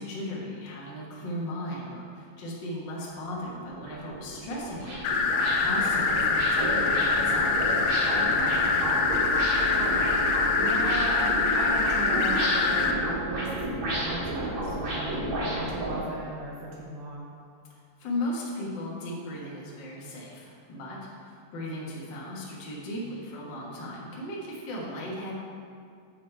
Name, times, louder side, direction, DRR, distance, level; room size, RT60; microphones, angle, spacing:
voice 1, 0.0-7.9 18.0-25.3, left 1 dB, 70° left, -5 dB, 1.1 m, -36 dB
sound 1, 3.6-16.0, right 1 dB, 50° right, 2.0 m, -32 dB
sound 2, 5.0-12.9, left 4 dB, 85° left, 2.4 m, -24 dB
voice 2, 8.3-9.1 9.7-10.3 10.6-17.3, right 2 dB, 70° right, -3 dB, 2.3 m, -38 dB
7.4 x 6.6 x 4.5 m, 2.3 s
omnidirectional pair, 4.3 m